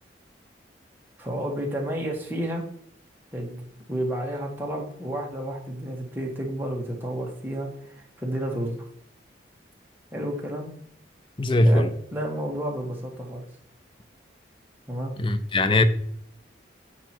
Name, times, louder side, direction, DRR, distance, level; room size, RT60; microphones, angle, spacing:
voice 1, 1.2-2.6 3.3-3.6 3.9-8.7 10.1-10.7 11.5-11.8 12.1-13.4 14.9-15.1, right 1 dB, 10° right, 1.6 m, -31 dB
voice 2, 11.4-11.9 15.2-15.8, left 1 dB, 25° left, 0.5 m, -20 dB
8.0 x 4.8 x 4.4 m
head